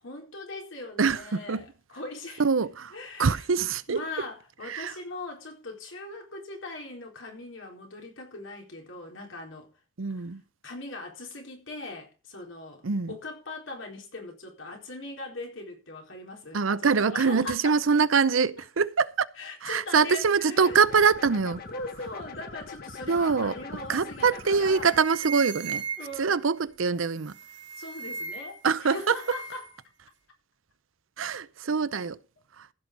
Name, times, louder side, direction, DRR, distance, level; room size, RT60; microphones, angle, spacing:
voice 1, 0.0-2.4 2.9-3.4 3.9-9.7 10.6-17.8 19.4-20.8 21.7-25.1 26.0-26.4 27.8-29.7, left 2 dB, 75° left, 4.2 m, -40 dB
voice 2, 1.0-1.6 2.4-2.9 3.2-4.0 4.7-4.9 10.0-10.4 12.8-13.2 16.5-19.3 19.6-21.6 23.1-23.5 23.9-25.8 26.2-27.4 28.6-29.2 31.2-32.2, right 5 dB, 85° right, 0.7 m, -24 dB
sound 1, 20.6-25.0, left 4 dB, 50° left, 1.5 m, -43 dB
sound 2, 24.2-24.4 24.7-26.4 27.2-28.7 28.9-29.7, right 6 dB, 60° right, 3.0 m, -37 dB
15.5 x 6.1 x 5.4 m
head